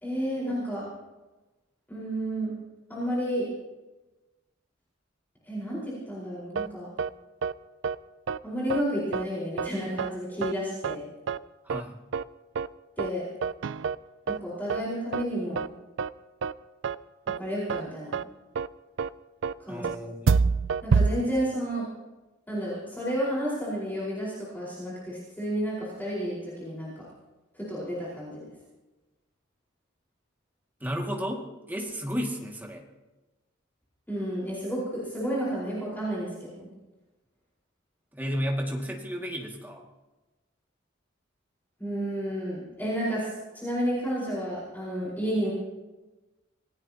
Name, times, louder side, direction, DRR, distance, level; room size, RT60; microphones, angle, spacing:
voice 1, 0.0-0.8 1.9-2.5 2.9-3.5 5.4-6.9 8.4-11.0 13.0-13.2 14.2-15.6 17.4-18.2 19.6-19.9 20.8-21.9 22.5-27.0 27.5-28.5 34.1-36.7 41.8-45.5, equal, 10° left, -8 dB, 4.8 m, -31 dB
sound 1, 6.5-6.7 7.0-7.1 7.4-7.5 7.8-7.9 8.3-8.4 8.7-8.8 9.1-9.2 9.6-9.7 10.0-10.1 10.4-10.5 10.8-10.9 11.3-11.4 11.7-11.8 12.1-12.2 12.5-12.7 13.0-13.1 13.4-13.9 14.3-14.4 14.7-14.8 15.1-15.2 15.6-15.7 16.0-16.1 16.4-16.5 16.8-16.9 17.3-17.4 17.7-17.8 18.1-18.2 18.5-18.7 19.0-19.1 19.4-19.5 19.8-19.9 20.3-21.1, right 5 dB, 70° right, 0.4 m, -26 dB
voice 2, 11.6-12.0 19.7-20.6 30.8-32.8 38.1-39.8, equal, 10° right, 0 dB, 2.2 m, -33 dB
26.5 x 17.5 x 3.0 m, 1.1 s
head